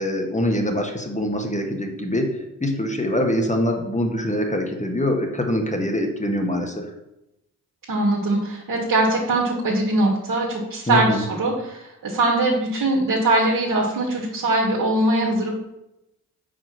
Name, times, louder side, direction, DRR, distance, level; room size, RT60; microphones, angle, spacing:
voice 1, 0.0-6.9 10.9-11.2, equal, 15° left, 3 dB, 1.7 m, -24 dB
voice 2, 7.9-15.5, right 2 dB, 50° right, -3 dB, 1.7 m, -21 dB
5.0 x 4.4 x 5.9 m, 0.88 s
hypercardioid pair, 40°, 43 cm